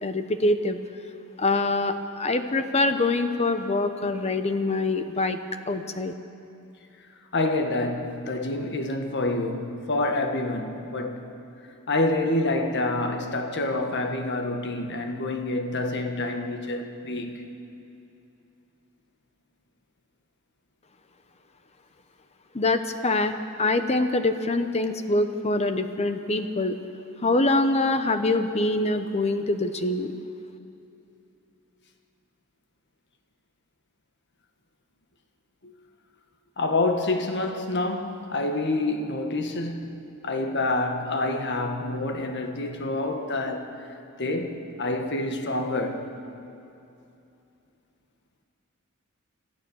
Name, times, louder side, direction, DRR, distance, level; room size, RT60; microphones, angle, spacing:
voice 1, 0.0-0.8 1.4-5.4 5.7-6.1 22.5-23.3 23.6-26.8 27.2-30.1, left 2 dB, 30° left, 0.9 m, -24 dB
voice 2, 7.3-11.3 11.9-17.4 35.6-35.7 36.6-43.7 44.2-46.1, left 2 dB, 55° left, 1.6 m, -27 dB
25.0 x 14.5 x 7.2 m
head